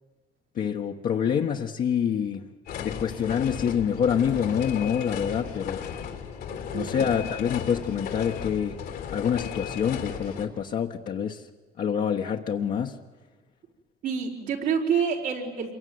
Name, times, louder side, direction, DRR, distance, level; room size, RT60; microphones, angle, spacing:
voice 1, 0.5-2.5 2.8-5.8 6.7-8.8 9.1-11.4 11.8-13.0, left 8 dB, 60° left, 1.4 m, -26 dB
sound 1, 2.7-10.5, left 7 dB, 80° left, 3.1 m, -35 dB
voice 2, 6.5-6.9 14.0-15.7, right 6 dB, 90° right, 4.9 m, -28 dB
27.0 x 23.0 x 9.5 m
cardioid pair, 100°, 16 cm